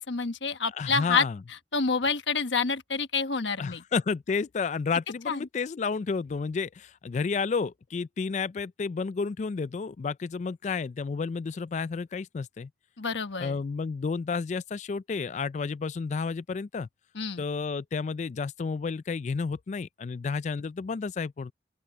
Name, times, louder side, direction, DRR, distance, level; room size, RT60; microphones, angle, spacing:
voice 1, 0.0-1.2 1.7-3.8 5.3-5.5 13.0-13.6 17.1-17.4, left 5 dB, 85° left, 1.2 m, -28 dB
voice 2, 0.8-1.4 3.6-12.7 13.4-16.9 17.4-21.5, left 5 dB, 40° left, 0.3 m, -31 dB
open air
head